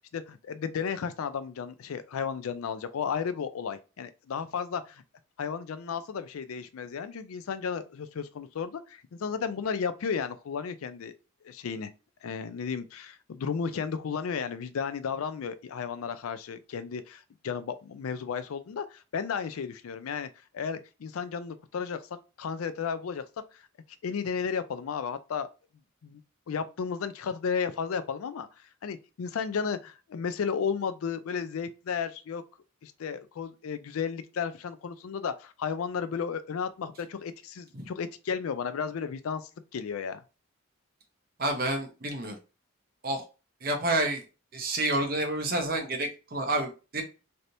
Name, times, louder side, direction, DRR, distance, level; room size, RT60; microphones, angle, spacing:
voice 1, 0.0-5.0 5.4-11.1 11.4-11.9 12.2-20.3 20.5-22.0 22.4-23.2 23.5-23.6 24.0-25.5 26.0-26.2 26.5-28.5 28.8-32.4 32.8-40.2, left 6 dB, 85° left, 0.4 m, -33 dB
voice 2, 41.4-42.4 43.0-43.2 43.6-44.2 44.5-47.0, right 2 dB, 45° right, 0.7 m, -29 dB
3.3 x 2.7 x 2.7 m
head